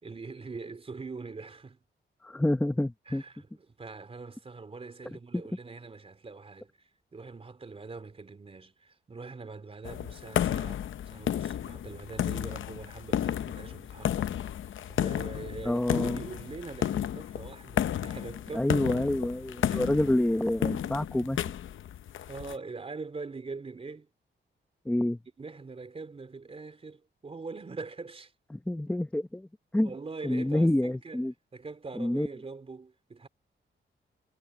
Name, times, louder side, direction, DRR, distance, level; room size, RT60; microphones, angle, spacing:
voice 1, 0.0-1.8 3.1-14.3 14.6-18.7 19.7-19.9 22.3-24.1 25.4-28.3 29.8-31.2 31.5-33.3, right 4 dB, 30° right, 3.6 m, -43 dB
voice 2, 2.2-3.2 5.3-5.4 15.6-16.2 18.5-21.4 24.8-25.2 28.5-29.5 29.7-29.9 30.2-31.3 32.0-32.3, left 1 dB, 5° left, 1.0 m, -27 dB
sound 1, 9.8-22.5, left 10 dB, 80° left, 0.7 m, -32 dB
wide cardioid pair, 150°, 20 cm